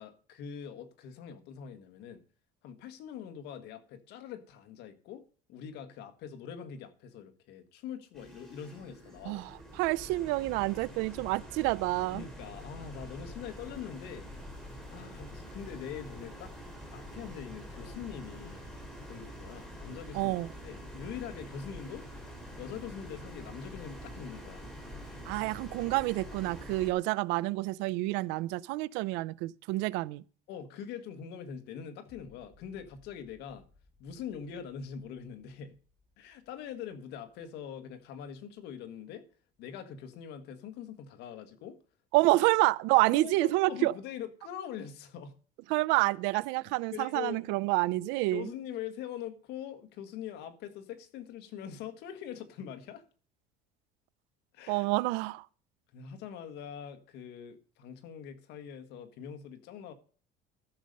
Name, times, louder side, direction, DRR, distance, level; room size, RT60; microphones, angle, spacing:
voice 1, 0.0-2.2 2.6-5.2 5.5-9.8 12.1-14.3 14.9-16.5 16.9-18.8 19.1-20.3 20.6-22.1 22.6-24.6 30.5-33.6 34.0-35.7 36.2-39.3 39.6-41.8 43.1-45.3 46.9-47.4 48.3-53.0 54.5-54.9 55.9-59.9, left 8 dB, 65° left, 1.6 m, -43 dB
sound 1, 8.1-26.9, equal, 5° left, 3.1 m, -46 dB
voice 2, 9.2-12.2 20.1-20.5 25.3-30.2 42.1-43.9 45.7-48.5 54.7-55.5, right 20 dB, 75° right, 0.5 m, -28 dB
sound 2, 32.0-39.1 39.5-39.6, left 3 dB, 35° left, 4.1 m, -65 dB
13.5 x 6.6 x 5.3 m
cardioid pair, 140°, 18 cm